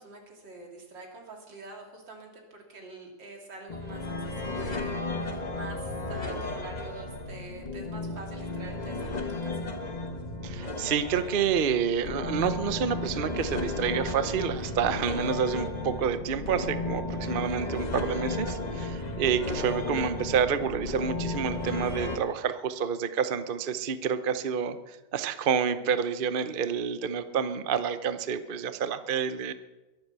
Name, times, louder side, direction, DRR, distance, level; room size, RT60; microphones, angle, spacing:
voice 1, 0.0-4.9 5.2-9.7, right 2 dB, 80° right, 1 dB, 3.6 m, -46 dB
sound 1, 3.7-22.2, left 2 dB, 25° left, 1.2 m, -34 dB
voice 2, 10.4-29.5, right 7 dB, 50° right, 11 dB, 0.6 m, -29 dB
22.0 x 8.0 x 6.9 m, 1.1 s
omnidirectional pair, 2.0 m